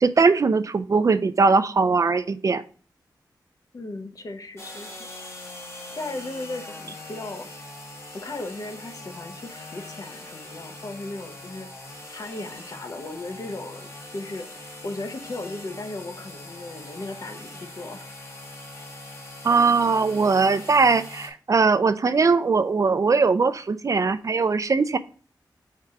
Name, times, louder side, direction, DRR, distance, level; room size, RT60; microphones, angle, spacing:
voice 1, 0.0-2.6 19.4-25.0, right 4 dB, 45° right, 12 dB, 0.4 m, -20 dB
voice 2, 3.7-5.1 5.9-7.5 8.1-11.7 12.1-13.8 14.1-18.2, left 2 dB, 50° left, 5 dB, 0.9 m, -36 dB
sound 1, 4.6-21.3, left 2 dB, 35° left, 1.4 m, -42 dB
4.7 x 3.7 x 5.6 m, 0.41 s
wide cardioid pair, 115°, 8 cm